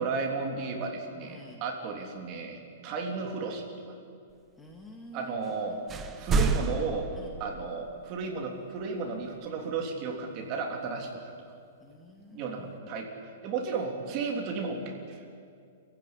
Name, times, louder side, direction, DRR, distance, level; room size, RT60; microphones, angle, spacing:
voice 1, 0.0-3.9 5.1-5.8 6.2-7.1 7.4-11.3 12.3-13.1 13.4-15.0, right 4 dB, 35° right, 2 dB, 3.5 m, -34 dB
voice 2, 1.2-1.6 4.6-6.0 7.2-7.3 11.8-12.5, left 1 dB, 10° left, 1 dB, 2.2 m, -49 dB
sound 1, 5.4-5.6 5.9-7.9, right 4 dB, 15° right, 1.1 m, -29 dB
28.5 x 15.5 x 10.0 m, 2.3 s
hypercardioid pair, 155°, 0 cm